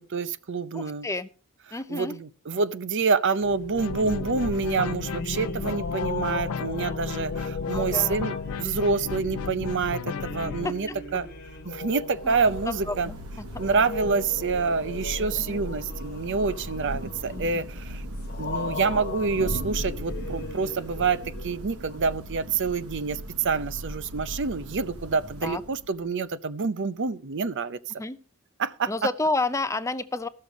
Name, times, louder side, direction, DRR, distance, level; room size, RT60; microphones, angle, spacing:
voice 1, 0.1-1.1 1.7-11.3 11.7-13.1 13.6-18.0 18.4-27.8 28.6-28.9, right 4 dB, 55° right, 0.6 m, -27 dB
voice 2, 0.7-1.3 1.7-2.2 7.7-8.2 10.6-11.0 12.2-13.5 14.0-14.2 15.4-15.6 17.3-17.6 25.4-25.6 28.0-28.2 28.9-30.3, left 2 dB, 15° left, 0.5 m, -31 dB
sound 1, 3.4-22.0, left 3 dB, 45° left, 1.5 m, -38 dB
sound 2, 3.8-10.7, left 6 dB, 70° left, 0.4 m, -33 dB
Thunder / Rain, 11.8-26.1, equal, 85° right, 1.5 m, -38 dB
15.0 x 6.5 x 5.2 m
head